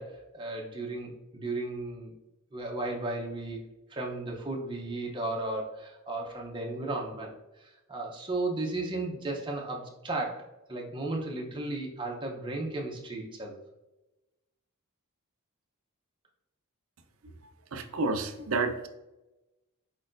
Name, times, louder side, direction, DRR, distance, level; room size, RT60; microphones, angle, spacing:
voice 1, 0.0-2.1 2.5-3.6 3.9-10.4 10.7-13.6, right 2 dB, 20° right, -1 dB, 0.7 m, -35 dB
voice 2, 17.7-18.9, right 3 dB, 65° right, 7 dB, 0.5 m, -30 dB
4.6 x 4.1 x 2.5 m, 0.99 s
head